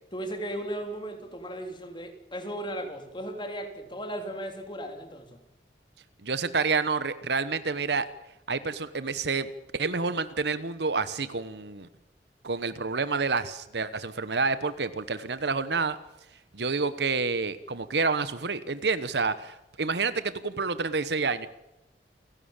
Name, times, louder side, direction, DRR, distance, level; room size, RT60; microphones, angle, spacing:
voice 1, 0.1-5.4, right 1 dB, 30° left, 6 dB, 3.2 m, -36 dB
voice 2, 6.2-8.1 8.5-9.5 9.7-11.9 12.4-16.0 16.5-21.5, right 4 dB, 70° right, 13 dB, 1.1 m, -28 dB
29.0 x 12.0 x 8.9 m, 0.95 s
head